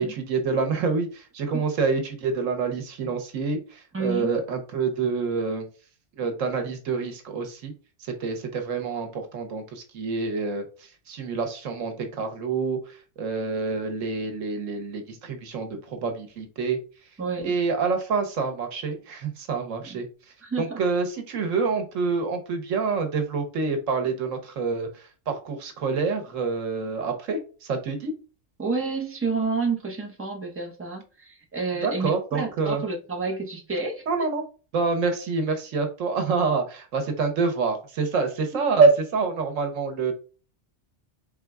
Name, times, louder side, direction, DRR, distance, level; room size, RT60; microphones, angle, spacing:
voice 1, 0.0-5.7 6.2-7.7 8.2-10.6 11.1-12.8 13.2-16.8 17.4-20.1 20.6-24.9 25.3-28.1 31.8-32.8 34.1-34.4 34.7-40.1, right 4 dB, 85° right, 1.2 m, -26 dB
voice 2, 3.9-4.3 17.2-17.6 19.8-20.0 20.4-20.8 28.6-34.3 38.5-38.6, right 4 dB, 15° right, 0.7 m, -30 dB
4.3 x 3.6 x 2.3 m
omnidirectional pair, 1.3 m